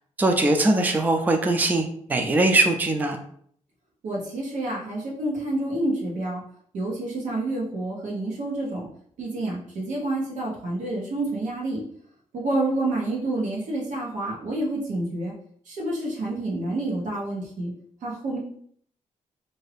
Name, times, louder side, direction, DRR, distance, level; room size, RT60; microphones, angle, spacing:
voice 1, 0.2-3.2, right 2 dB, 15° right, 4 dB, 0.3 m, -21 dB
voice 2, 4.0-6.4 6.7-8.9 9.2-11.8 12.3-15.3 15.7-17.7 18.0-18.4, right 2 dB, 90° right, -2 dB, 1.0 m, -28 dB
2.6 x 2.4 x 3.3 m, 0.63 s
wide cardioid pair, 130°, 12 cm